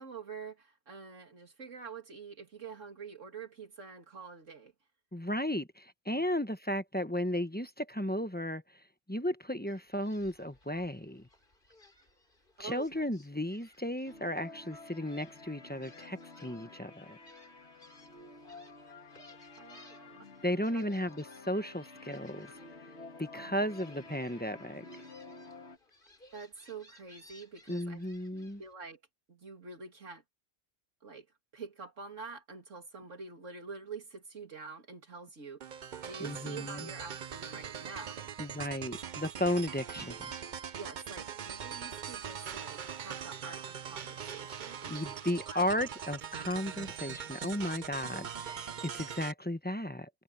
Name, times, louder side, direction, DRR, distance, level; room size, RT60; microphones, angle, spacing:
voice 1, 0.0-4.7 6.1-6.3 12.6-13.0 19.6-20.3 20.7-20.8 23.3-23.5 26.3-28.0 28.5-29.0 29.3-30.2 31.0-31.3 31.5-35.7 36.0-38.2 38.9-39.0 40.8-44.9 45.5-45.6, right 5 dB, 85° right, 3.1 m, -46 dB
voice 2, 5.1-8.6 9.1-11.3 12.6-17.2 20.4-22.5 23.2-24.8 27.7-28.6 36.2-36.9 38.4-40.2 44.9-50.1, left 1 dB, 10° left, 1.0 m, -34 dB
Gull seagull, 9.7-28.7, left 1 dB, 45° left, 4.1 m, -61 dB
sound 1, 14.0-25.8, left 3 dB, 60° left, 2.0 m, -51 dB
sound 2, 35.6-49.3, right 8 dB, 45° right, 0.7 m, -42 dB
omnidirectional pair, 1.3 m